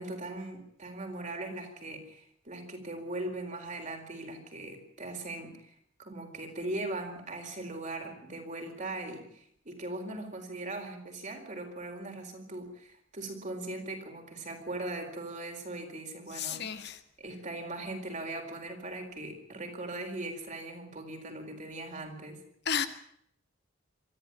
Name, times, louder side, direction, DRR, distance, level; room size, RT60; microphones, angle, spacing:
voice 1, 0.0-16.6 17.2-22.4, right 2 dB, 40° right, 4.4 m, -40 dB
voice 2, 16.3-17.0 22.7-22.9, left 7 dB, 55° left, 1.9 m, -32 dB
23.5 x 14.0 x 8.7 m
head